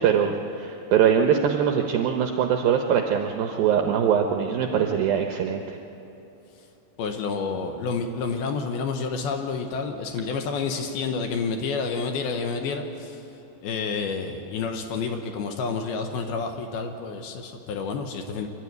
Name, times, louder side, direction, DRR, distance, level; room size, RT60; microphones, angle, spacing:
voice 1, 0.0-5.8, right 8 dB, 80° right, 4 dB, 2.1 m, -22 dB
voice 2, 7.0-13.2 13.6-18.5, left 5 dB, 75° left, 5 dB, 2.6 m, -29 dB
25.5 x 12.5 x 9.5 m, 2.9 s
omnidirectional pair, 5.1 m